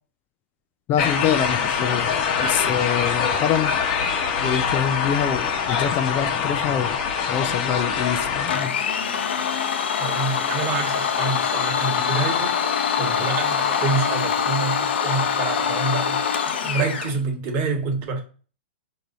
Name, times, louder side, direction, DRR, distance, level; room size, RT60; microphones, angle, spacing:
voice 1, 0.9-3.7 4.4-7.0 7.3-8.8, left 9 dB, 35° left, 0.4 m, -25 dB
sound 1, 1.0-8.5, left 6 dB, 50° left, 0.9 m, -24 dB
Domestic sounds home sounds, 8.5-17.1, left 7 dB, 75° left, 0.7 m, -24 dB
voice 2, 10.0-18.2, right 4 dB, 40° right, 1.3 m, -27 dB
4.6 x 2.7 x 3.9 m
hypercardioid pair, 125°, 6 cm